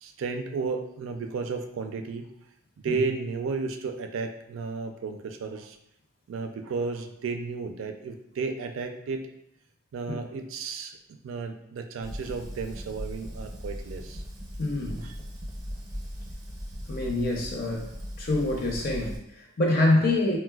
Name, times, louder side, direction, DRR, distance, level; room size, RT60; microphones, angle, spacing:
voice 1, 0.0-2.3 2.8-5.8 6.3-9.3 9.9-14.2 15.0-15.1, right 4 dB, 80° right, 6 dB, 0.3 m, -33 dB
Fire, 12.0-19.2, equal, 20° right, 0.6 m, -38 dB
voice 2, 14.6-15.1 16.9-17.9 18.2-20.4, left 2 dB, 50° left, -1 dB, 0.6 m, -26 dB
3.9 x 2.1 x 2.2 m, 0.78 s
head